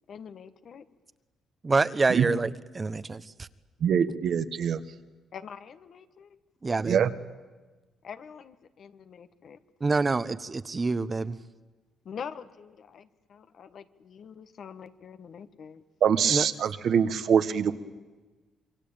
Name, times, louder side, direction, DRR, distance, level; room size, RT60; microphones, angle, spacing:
voice 1, 0.1-0.8 5.3-6.3 8.0-9.6 12.0-15.8, left 7 dB, 60° left, 11 dB, 1.4 m, -44 dB
voice 2, 1.6-3.5 6.6-7.0 9.8-11.4 16.3-16.5, right 3 dB, 25° right, 15 dB, 1.0 m, -27 dB
voice 3, 3.8-4.8 6.8-7.1 16.0-17.7, right 7 dB, 65° right, 10 dB, 1.4 m, -24 dB
26.5 x 23.0 x 8.9 m, 1.3 s
cardioid pair, 90°, 0 cm